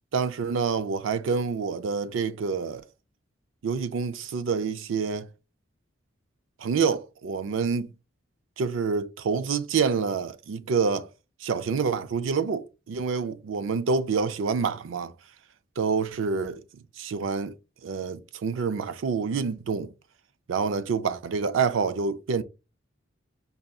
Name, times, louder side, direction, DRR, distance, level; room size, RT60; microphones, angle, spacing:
voice 1, 0.1-2.8 3.6-5.3 6.6-7.9 8.6-11.1 11.4-15.1 15.8-16.6 17.0-17.5 17.8-19.9 20.5-22.4, right 5 dB, 80° right, 0.4 m, -27 dB
5.4 x 2.6 x 2.3 m
head